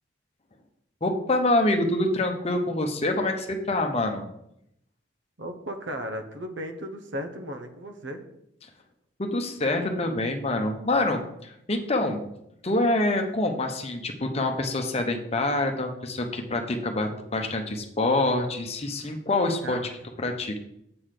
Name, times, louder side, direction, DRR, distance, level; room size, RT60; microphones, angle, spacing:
voice 1, 1.0-4.3 9.2-12.3 12.6-19.8 20.2-20.6, left 2 dB, 35° left, 4 dB, 0.9 m, -26 dB
voice 2, 5.4-8.2 19.6-19.9, equal, 75° right, 5 dB, 1.0 m, -35 dB
7.8 x 4.0 x 6.5 m, 0.78 s
head